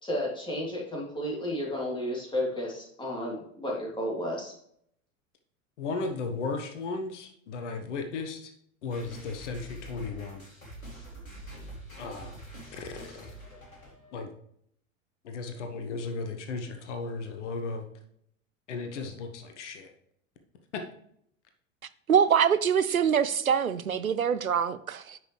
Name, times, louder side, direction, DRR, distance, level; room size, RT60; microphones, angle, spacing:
voice 1, 0.0-4.5, left 1 dB, 10° left, 3.2 m, -32 dB
voice 2, 5.8-8.5 8.8-10.4 12.0-12.3 12.7-13.3 14.1-14.3 15.2-17.9 18.7-19.9 20.7-20.8, left 4 dB, 60° left, 1.3 m, -35 dB
sound 1, 8.9-14.2, right 1 dB, 80° left, 2.4 m, -46 dB
voice 3, 22.1-25.2, right 7 dB, 85° right, 0.6 m, -24 dB
9.6 x 6.1 x 3.3 m
figure-of-eight pair, 85°, 41 cm